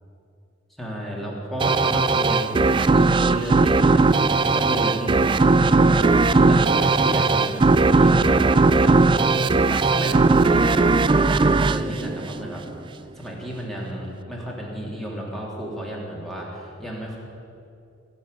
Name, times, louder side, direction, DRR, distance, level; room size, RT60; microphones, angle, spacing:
voice 1, 0.8-9.0 9.3-12.6 13.2-17.2, equal, ahead, -4 dB, 3.2 m, -32 dB
sound 1, 1.6-12.8, right 3 dB, 25° right, 0.4 m, -18 dB
19.0 x 7.2 x 9.9 m, 2.6 s
head